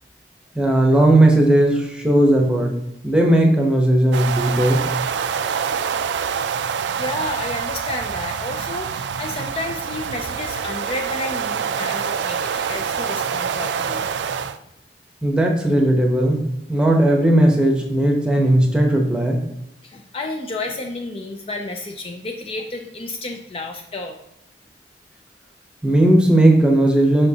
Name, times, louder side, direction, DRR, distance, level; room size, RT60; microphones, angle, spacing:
voice 1, 0.5-2.7 3.0-4.8 15.2-16.4 16.7-19.4 25.8-27.3, right 1 dB, 5° right, 1 dB, 0.9 m, -16 dB
sound 1, 4.1-14.6, right 7 dB, 85° right, 0.3 m, -26 dB
voice 2, 7.0-14.1 19.8-24.2, left 2 dB, 30° left, 3 dB, 0.4 m, -31 dB
6.4 x 5.6 x 2.8 m, 0.82 s
head